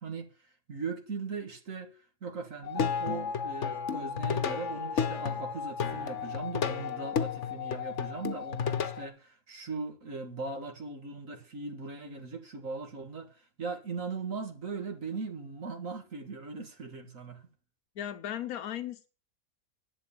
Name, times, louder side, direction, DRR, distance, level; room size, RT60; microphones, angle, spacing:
voice 1, 0.0-17.5, right 4 dB, 65° right, 2.2 m, -39 dB
Plucked string instrument, 2.6-9.1, left 7 dB, 60° left, 1.2 m, -32 dB
voice 2, 18.0-19.1, left 11 dB, 80° left, 1.4 m, -36 dB
11.0 x 8.0 x 8.6 m
omnidirectional pair, 1.5 m